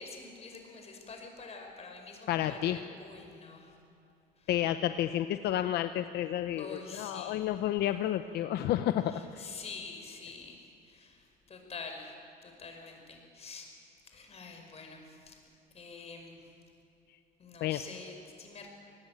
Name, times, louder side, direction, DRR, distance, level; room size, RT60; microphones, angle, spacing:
voice 1, 0.0-3.8 4.4-4.5 6.6-7.5 9.1-12.1 12.4-13.7 14.0-15.4 15.7-16.5 17.4-18.7, left 4 dB, 40° left, 4 dB, 5.4 m, -47 dB
voice 2, 2.3-2.8 4.5-9.5 17.6-17.8, left 12 dB, 75° left, 10 dB, 0.8 m, -31 dB
25.5 x 19.5 x 9.0 m, 2.7 s
cardioid pair, 110°, 17 cm